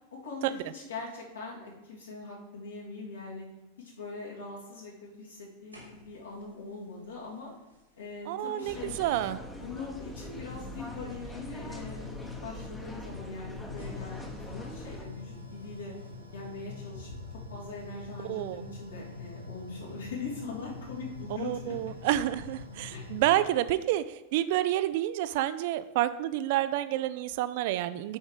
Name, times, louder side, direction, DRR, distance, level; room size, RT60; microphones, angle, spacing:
voice 1, 0.1-3.5 3.8-7.5 8.0-9.0 9.6-15.9 16.3-17.1 17.5-21.9 22.9-23.1, left 4 dB, 70° left, -4 dB, 2.8 m, -42 dB
sound 1, 5.7-6.3 7.7-7.8 8.6-23.6, left 4 dB, 85° right, 2.6 m, -45 dB
voice 2, 8.3-9.4 18.3-18.6 21.4-28.2, right 13 dB, 50° right, 13 dB, 0.4 m, -29 dB
sound 2, 8.7-15.1, equal, 10° left, 1.0 m, -43 dB
8.7 x 5.2 x 4.7 m, 1.0 s
figure-of-eight pair, 90°, 0 cm